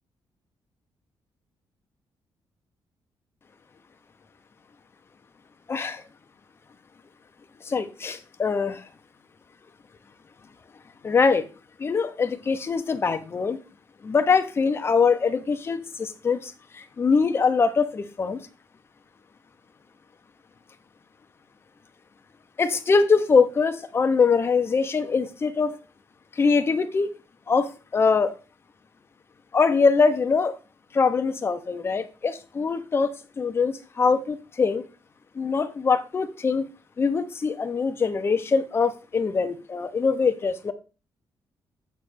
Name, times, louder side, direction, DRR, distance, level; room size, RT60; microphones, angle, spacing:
voice 1, 5.7-6.0 7.7-8.8 11.0-11.4 11.8-13.6 14.0-16.5 17.0-18.4 22.6-25.8 26.4-27.1 27.5-28.3 29.5-30.6 30.9-34.8 35.4-36.6 37.0-40.7, left 5 dB, 30° left, 8 dB, 0.8 m, -23 dB
8.2 x 3.2 x 6.3 m, 0.34 s
cardioid pair, 150°, 8 cm